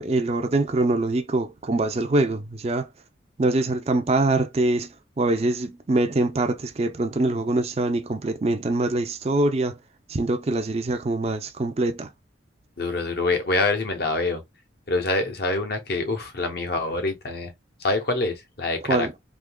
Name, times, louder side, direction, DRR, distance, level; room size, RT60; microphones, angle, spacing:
voice 1, 0.0-2.9 3.4-4.9 5.2-9.7 10.1-12.1 18.9-19.1, right 2 dB, 35° right, 0.4 m, -24 dB
voice 2, 12.8-14.4 14.9-17.5 17.8-19.1, left 2 dB, 55° left, 0.9 m, -25 dB
3.6 x 2.8 x 2.2 m
head